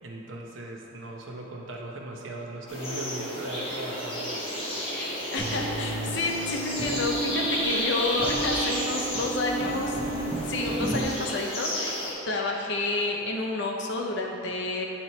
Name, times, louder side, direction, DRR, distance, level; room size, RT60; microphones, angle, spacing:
voice 1, 0.0-4.4, right 2 dB, 80° right, 0 dB, 0.7 m, -38 dB
sound 1, 2.7-12.1, equal, 30° left, 1.3 m, -32 dB
voice 2, 4.9-10.0 10.4-12.0 12.3-14.9, left 2 dB, 65° left, 1 dB, 0.6 m, -30 dB
sound 2, 5.4-11.0, right 3 dB, 20° right, 0.5 m, -33 dB
7.7 x 3.0 x 4.1 m, 2.9 s
head